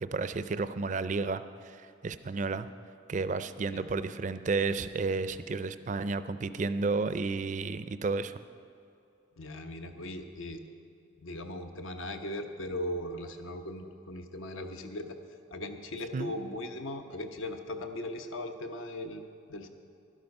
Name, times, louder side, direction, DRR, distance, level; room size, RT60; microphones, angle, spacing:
voice 1, 0.0-2.7 3.1-8.3 16.1-16.3, right 4 dB, 40° right, 12 dB, 0.4 m, -32 dB
voice 2, 9.4-10.6 11.2-15.2 15.5-19.2 19.5-19.7, left 1 dB, 85° left, 6 dB, 0.9 m, -38 dB
12.5 x 11.5 x 5.3 m, 2.6 s
head